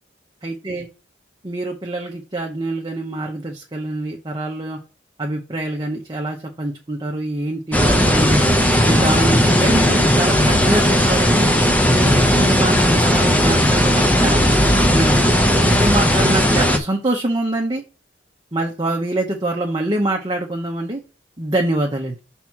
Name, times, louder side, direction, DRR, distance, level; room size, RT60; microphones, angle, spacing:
voice 1, 0.4-0.9 1.4-4.8 5.2-8.4 8.9-11.5 11.9-15.2 15.6-17.8 18.5-21.0 21.4-22.2, right 1 dB, 25° right, 0 dB, 0.8 m, -25 dB
sound 1, 7.7-16.8, equal, 10° left, 0.7 m, -16 dB
5.9 x 3.6 x 6.0 m, 0.33 s
head